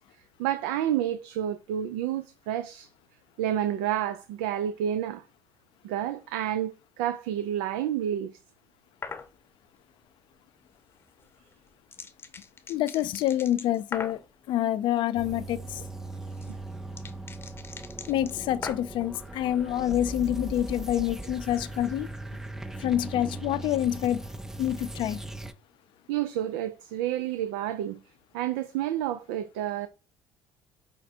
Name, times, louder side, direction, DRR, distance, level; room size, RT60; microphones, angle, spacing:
voice 1, 0.4-2.9 3.4-5.2 5.8-8.4 26.1-28.0 28.3-29.9, right 11 dB, 85° right, 0.4 m, -29 dB
sound 1, 9.0-9.3 11.2-14.3 15.8-19.1, left 4 dB, 25° left, 0.8 m, -41 dB
voice 2, 12.7-14.2 14.5-15.8 18.1-22.1 22.8-24.2 24.6-25.2, left 12 dB, 65° left, 0.4 m, -27 dB
sound 2, 15.2-25.5, right 2 dB, 5° right, 0.4 m, -39 dB
5.0 x 2.1 x 4.3 m
supercardioid pair, 80°, 9 cm